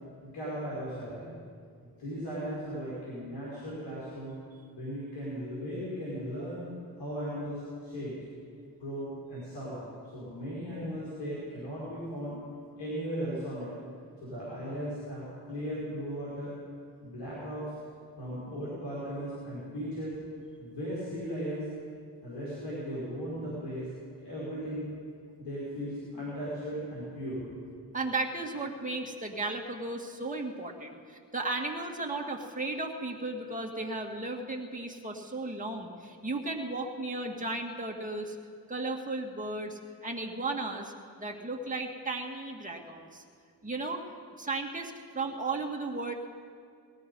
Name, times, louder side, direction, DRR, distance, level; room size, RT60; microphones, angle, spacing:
voice 1, 0.2-1.3 2.0-4.3 4.7-6.6 7.0-8.2 8.8-12.4 12.8-13.7 14.2-16.5 17.0-17.7 18.2-20.2 20.6-21.6 22.2-23.9 24.2-24.8 25.4-27.4, equal, 75° left, -8 dB, 5.0 m, -37 dB
voice 2, 27.9-38.4 38.7-40.9 41.2-43.2 43.6-44.0 44.4-46.1, right 2 dB, 20° right, 0 dB, 2.1 m, -35 dB
18.5 x 13.0 x 5.5 m, 2.2 s
supercardioid pair, 40°, 41 cm